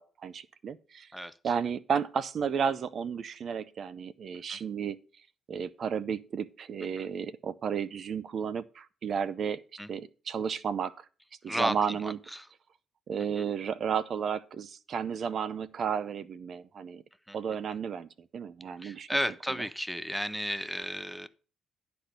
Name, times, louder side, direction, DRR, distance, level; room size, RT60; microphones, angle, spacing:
voice 1, 0.0-1.1 1.4-5.0 5.5-9.6 9.9-11.1 11.4-12.2 13.1-17.0 17.3-19.1, right 7 dB, 55° right, 0.5 m, -33 dB
voice 2, 11.5-12.0 12.3-12.4 13.4-13.5 17.3-17.4 18.8-21.3, equal, ahead, 0.6 m, -33 dB
11.5 x 4.3 x 6.6 m
cardioid pair, 90°, 0 cm